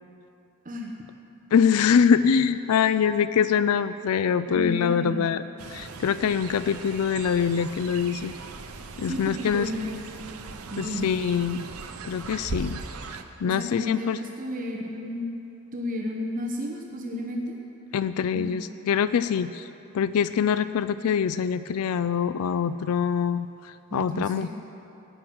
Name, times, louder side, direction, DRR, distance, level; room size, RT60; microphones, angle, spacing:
voice 1, 1.5-5.4 5.7-8.3 9.0-9.7 10.8-11.7 12.0-12.8 13.4-14.2 17.9-19.7 19.9-24.5, left 7 dB, 90° left, 13 dB, 0.4 m, -24 dB
voice 2, 4.5-5.3 9.0-10.0 10.7-11.3 13.4-15.3 15.7-17.6 18.3-18.7 23.9-24.5, left 1 dB, 40° right, 0 dB, 1.0 m, -33 dB
Fowl, 5.6-13.2, right 4 dB, 80° right, 0.8 m, -39 dB
18.0 x 6.1 x 7.7 m, 3.0 s
head